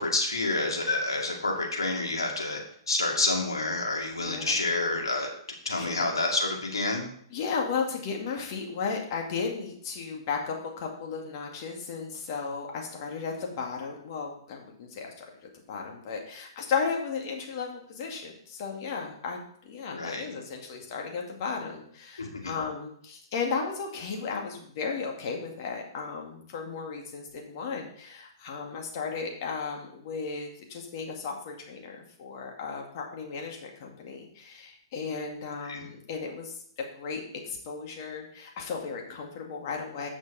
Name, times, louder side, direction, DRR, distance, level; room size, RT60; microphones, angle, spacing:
voice 1, 0.0-2.6 2.9-5.3 5.6-7.1 19.9-20.3 22.2-22.5 35.6-35.8, left 2 dB, 90° left, 0 dB, 2.1 m, -28 dB
voice 2, 4.2-4.5 5.8-6.2 7.3-36.6 37.0-40.1, left 5 dB, 50° left, 1 dB, 2.2 m, -35 dB
8.6 x 6.1 x 4.2 m, 0.63 s
hypercardioid pair, 120°, 2 cm